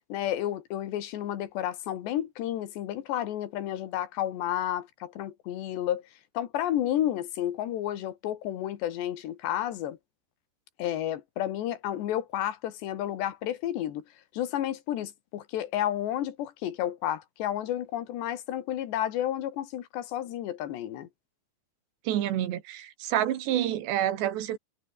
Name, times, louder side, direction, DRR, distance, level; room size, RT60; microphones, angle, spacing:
voice 1, 0.1-6.0 6.4-10.0 10.8-14.0 14.3-21.1, left 12 dB, 85° left, 4.1 m, -31 dB
voice 2, 22.1-24.6, right 12 dB, 85° right, 4.1 m, -28 dB
omnidirectional pair, 4.8 m